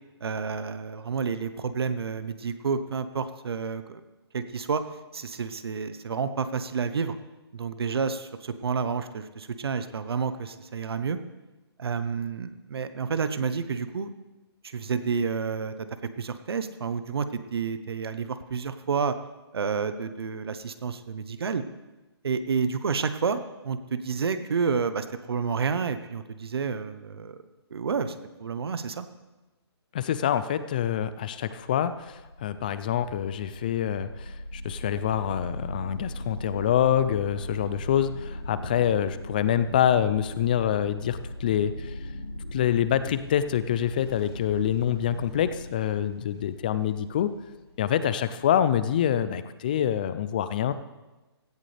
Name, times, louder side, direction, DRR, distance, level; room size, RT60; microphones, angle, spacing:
voice 1, 0.2-4.0 4.3-4.8 5.1-7.1 7.5-11.2 11.8-14.1 14.6-15.7 16.2-19.1 19.5-21.6 22.2-27.4 27.7-28.1 28.4-29.1, right 5 dB, 65° right, 11 dB, 1.0 m, -30 dB
voice 2, 29.9-41.9 42.5-47.3 47.8-50.7, left 10 dB, 20° left, 13 dB, 0.4 m, -26 dB
sound 1, 32.0-49.0, left 1 dB, 55° left, 4.0 m, -39 dB
16.5 x 14.0 x 3.4 m, 1.1 s
hypercardioid pair, 165°, 14 cm